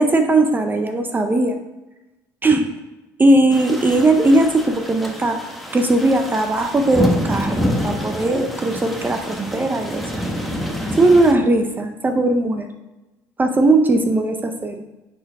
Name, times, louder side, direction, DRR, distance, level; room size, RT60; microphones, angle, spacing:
voice 1, 0.0-1.6 2.4-2.7 3.2-5.4 5.7-10.0 11.0-12.7 13.4-14.8, right 2 dB, 20° right, 6 dB, 0.7 m, -18 dB
sound 1, 3.5-11.3, equal, ahead, 1.2 m, -27 dB
9.7 x 4.4 x 3.6 m, 1.0 s
supercardioid pair, 85°, 9 cm